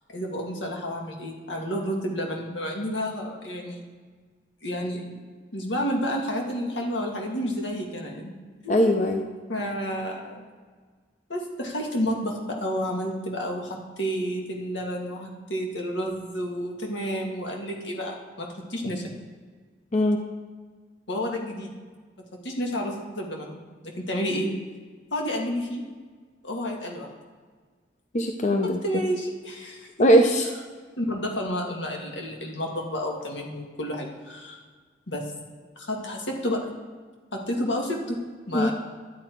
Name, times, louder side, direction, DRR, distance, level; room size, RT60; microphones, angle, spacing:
voice 1, 0.1-3.8 4.6-5.2 5.5-8.3 8.6-8.8 9.5-10.4 11.3-19.0 21.1-21.7 22.4-23.6 23.8-24.5 25.1-25.8 26.4-27.1 28.6-29.9 31.0-34.6 35.1-35.3 35.8-36.6 37.3-38.2 38.5-38.7, equal, 85° left, 0 dB, 1.8 m, -30 dB
voice 2, 8.7-9.2 19.9-20.2 28.1-28.8 30.0-30.5 38.5-38.7, equal, 40° left, 4 dB, 0.6 m, -20 dB
11.5 x 8.8 x 4.5 m, 1.5 s
head